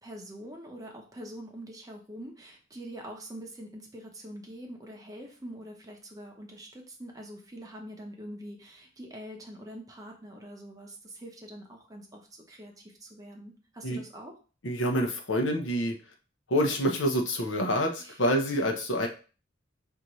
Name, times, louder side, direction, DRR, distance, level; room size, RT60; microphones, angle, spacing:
voice 1, 0.0-14.3 18.0-18.2 19.0-19.1, equal, 15° right, 0 dB, 0.8 m, -44 dB
voice 2, 14.6-16.0 16.5-19.1, equal, 65° left, 3 dB, 0.8 m, -27 dB
5.1 x 2.7 x 3.1 m, 0.37 s
head